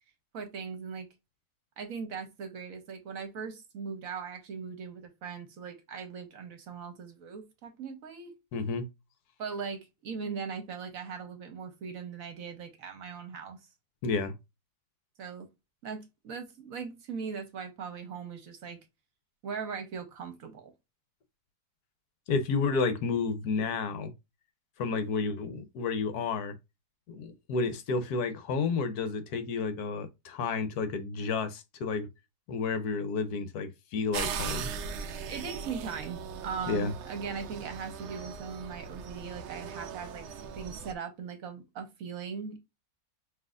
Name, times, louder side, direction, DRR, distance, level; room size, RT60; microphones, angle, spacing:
voice 1, 0.3-1.1 1.8-8.3 9.4-13.6 15.2-15.5 15.8-18.8 19.4-20.7 35.3-40.3 40.5-42.6, right 6 dB, 60° right, 1.1 m, -39 dB
voice 2, 8.5-8.8 14.0-14.3 22.3-24.1 24.8-26.5 27.1-32.1 32.5-34.7 36.7-36.9, left 4 dB, 70° left, 1.2 m, -31 dB
sound 1, 34.1-40.9, right 6 dB, 85° right, 0.6 m, -39 dB
5.8 x 2.7 x 2.4 m
omnidirectional pair, 1.8 m